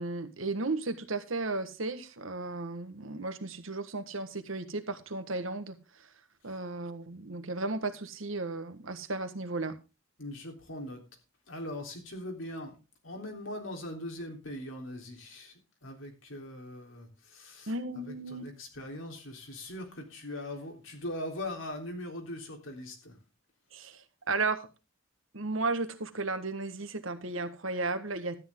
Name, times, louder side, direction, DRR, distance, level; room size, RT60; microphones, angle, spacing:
voice 1, 0.0-5.8 6.4-9.7 17.7-18.5 23.7-24.7 25.3-28.4, right 3 dB, 85° right, 9 dB, 1.5 m, -34 dB
voice 2, 10.2-11.0 11.5-12.8 13.0-15.5 15.8-17.7 18.0-23.2, left 1 dB, 75° left, 2 dB, 3.6 m, -41 dB
13.0 x 9.9 x 3.8 m, 0.28 s
head